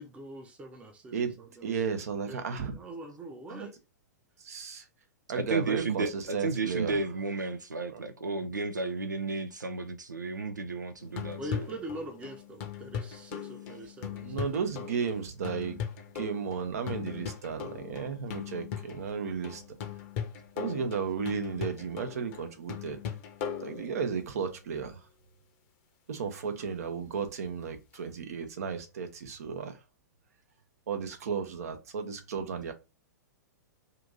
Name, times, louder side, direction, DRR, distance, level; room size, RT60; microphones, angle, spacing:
voice 1, 0.0-2.4 2.7-3.8 11.4-14.8, right 1 dB, 10° right, 0.6 m, -43 dB
voice 2, 1.6-2.7 3.5-3.7 4.4-4.8 5.3-7.0 7.9-8.1 14.2-15.8 16.1-19.6 20.6-23.0 23.6-25.0 26.1-29.8 30.9-32.7, right 6 dB, 55° right, 0.7 m, -34 dB
voice 3, 5.4-6.1 6.4-11.7, right 3 dB, 85° right, 0.4 m, -33 dB
sound 1, 11.0-24.4 27.9-28.0, left 8 dB, 40° left, 0.7 m, -39 dB
2.8 x 2.6 x 3.7 m
figure-of-eight pair, 105°, 10 cm